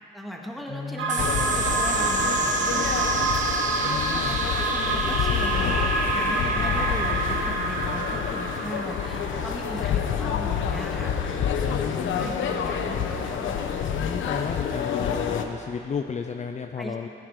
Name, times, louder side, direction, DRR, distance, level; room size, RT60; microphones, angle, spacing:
voice 1, 0.1-2.8 3.7-5.8 6.1-11.4 11.7-13.5 16.8-17.1, equal, ahead, -1 dB, 2.1 m, -38 dB
voice 2, 0.7-1.3 3.8-4.4 11.6-12.3 13.8-17.1, left 6 dB, 35° left, 5 dB, 0.7 m, -33 dB
sound 1, 1.0-8.7, right 3 dB, 75° right, 1.7 m, -27 dB
sound 2, 1.1-15.9, right 3 dB, 40° right, 1.6 m, -35 dB
sound 3, 1.2-15.4, left 8 dB, 80° left, 1.1 m, -28 dB
17.0 x 13.5 x 4.9 m, 2.9 s
cardioid pair, 90°, 20 cm